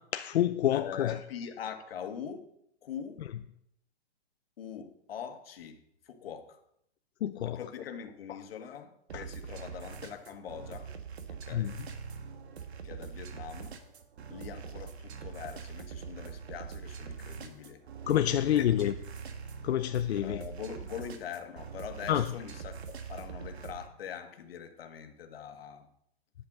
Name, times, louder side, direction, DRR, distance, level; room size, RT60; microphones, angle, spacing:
voice 1, 0.1-1.1 7.2-7.6 9.1-9.2 11.5-11.7 18.1-18.9 19.6-20.4 22.1-22.2, left 11 dB, 90° left, 0.7 m, -27 dB
voice 2, 0.7-2.5 2.8-3.3 4.6-6.6 7.4-10.9 11.3-11.8 12.8-13.8 14.3-17.8 18.3-18.9 20.2-25.9, left 8 dB, 65° left, 1.6 m, -43 dB
sound 1, 9.1-23.9, right 6 dB, 85° right, 1.6 m, -43 dB
10.5 x 5.7 x 7.3 m
hypercardioid pair, 170°, 32 cm